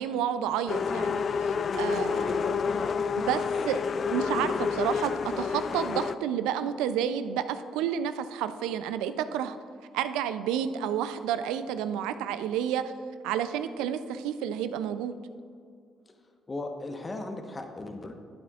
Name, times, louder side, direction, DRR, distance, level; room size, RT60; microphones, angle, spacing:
voice 1, 0.0-2.8 3.2-9.6 9.9-12.9 13.2-15.1, right 9 dB, 85° right, 12 dB, 0.4 m, -30 dB
sound 1, 0.7-6.1, left 5 dB, 55° left, 0.3 m, -29 dB
voice 2, 2.1-2.5 16.1-16.2 16.5-18.1, left 2 dB, 30° left, 4 dB, 1.0 m, -37 dB
12.0 x 8.6 x 2.4 m, 2.2 s
supercardioid pair, 55°, 0 cm